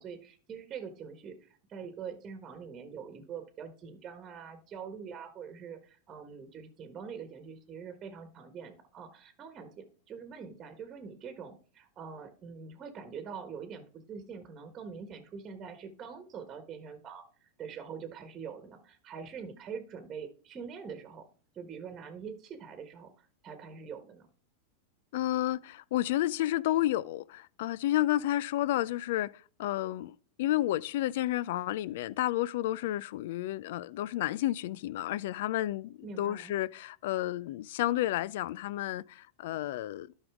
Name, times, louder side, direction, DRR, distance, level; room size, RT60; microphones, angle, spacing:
voice 1, 0.0-21.3 21.5-24.3 36.0-36.5, right 6 dB, 30° right, 1.3 m, -44 dB
voice 2, 25.1-29.3 29.6-40.1, left 14 dB, 70° left, 0.3 m, -31 dB
12.0 x 5.4 x 3.6 m
hypercardioid pair, 120°, 0 cm